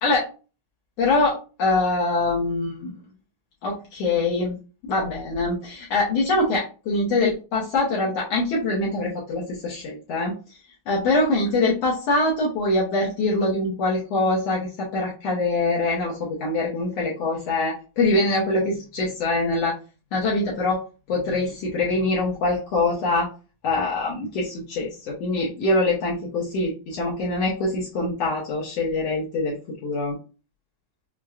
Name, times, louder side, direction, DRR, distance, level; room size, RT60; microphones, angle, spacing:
voice 1, 1.0-2.9 3.6-4.6 4.9-10.3 10.9-19.7 20.1-20.8 21.1-23.3 23.6-29.6 29.8-30.2, left 2 dB, 70° left, -4 dB, 1.6 m, -24 dB
6.1 x 2.2 x 2.3 m, 0.34 s
omnidirectional pair, 3.6 m